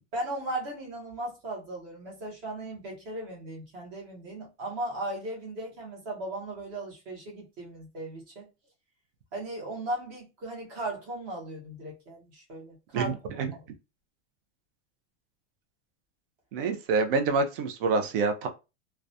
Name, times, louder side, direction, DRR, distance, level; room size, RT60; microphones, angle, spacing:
voice 1, 0.1-8.5 9.3-13.1 13.5-13.6, right 1 dB, 30° right, 0.8 m, -37 dB
voice 2, 12.9-13.5 16.5-18.5, right 4 dB, 50° right, 0.5 m, -27 dB
2.3 x 2.1 x 2.6 m
supercardioid pair, 180°, 35 cm